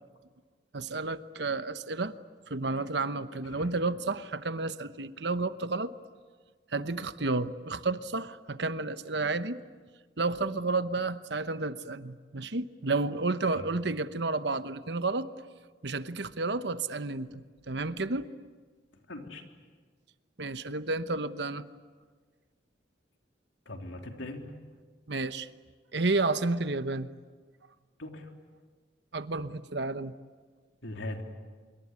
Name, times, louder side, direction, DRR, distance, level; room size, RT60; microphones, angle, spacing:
voice 1, 0.7-2.1 2.5-5.9 6.7-9.6 10.2-15.3 15.8-18.3 20.4-21.6 25.1-25.5 25.9-27.1 29.1-30.1, right 3 dB, 65° right, 12 dB, 1.0 m, -31 dB
voice 2, 19.1-19.4 23.7-24.4 28.0-28.3 30.8-31.2, left 1 dB, 90° left, 3 dB, 3.5 m, -40 dB
26.0 x 23.5 x 9.7 m, 1.5 s
head